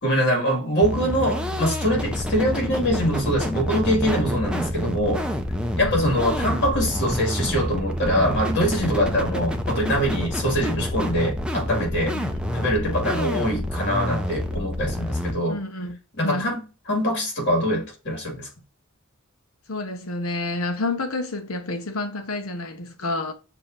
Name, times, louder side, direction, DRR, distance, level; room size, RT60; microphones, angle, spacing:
voice 1, 0.0-5.2 5.8-12.2 12.5-15.6 16.2-16.6 16.9-18.5, equal, 55° left, 2.1 m, -23 dB
sound 1, 0.8-15.3, equal, 5° right, 0.5 m, -27 dB
voice 2, 9.0-9.4 12.1-12.5 15.5-16.5 19.7-23.3, left 2 dB, 85° left, 0.9 m, -30 dB
6.9 x 2.9 x 2.5 m
head